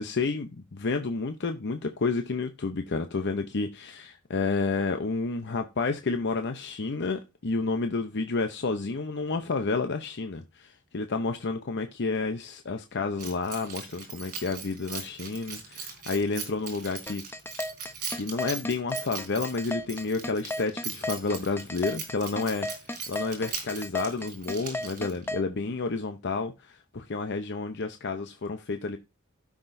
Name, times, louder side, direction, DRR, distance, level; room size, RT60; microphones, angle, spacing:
voice 1, 0.0-17.2 18.1-22.7 23.1-29.0, left 3 dB, 55° left, 0.7 m, -30 dB
Keys jangling, 13.2-25.3, right 6 dB, 40° right, 3.9 m, -40 dB
sound 1, 17.1-25.4, left 1 dB, 10° left, 0.7 m, -34 dB
16.0 x 6.0 x 2.6 m
head